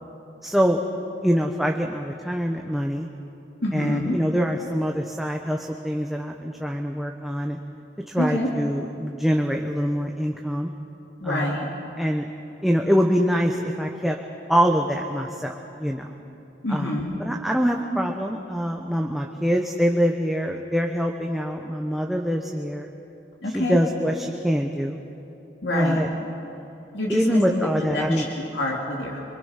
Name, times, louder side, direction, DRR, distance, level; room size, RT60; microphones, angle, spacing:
voice 1, 0.4-0.8 1.2-3.1 3.7-7.6 8.1-10.7 11.2-11.6 12.0-12.3 12.6-14.2 14.5-16.1 16.7-16.9 17.2-22.9 23.5-25.0 25.7-26.1 27.1-28.3, equal, ahead, 1 dB, 0.9 m, -24 dB
voice 2, 3.6-4.1 8.2-8.5 11.2-11.6 16.6-17.2 23.4-23.8 25.6-26.0 26.9-29.2, left 1 dB, 75° left, -2 dB, 2.7 m, -27 dB
25.0 x 24.0 x 5.7 m, 2.9 s
head